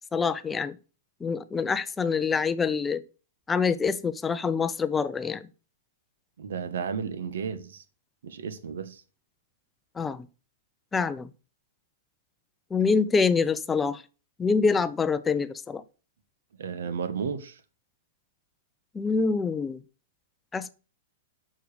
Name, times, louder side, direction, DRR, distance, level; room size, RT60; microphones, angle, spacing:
voice 1, 0.1-0.8 1.2-3.0 3.5-5.5 10.0-10.3 10.9-11.3 12.7-14.0 14.4-15.8 18.9-19.8 20.5-20.7, left 5 dB, 15° left, 0.5 m, -25 dB
voice 2, 6.4-7.8 8.2-9.0 16.6-17.6, right 6 dB, 75° right, 1.2 m, -33 dB
6.7 x 6.4 x 5.0 m
hypercardioid pair, 120°, 0 cm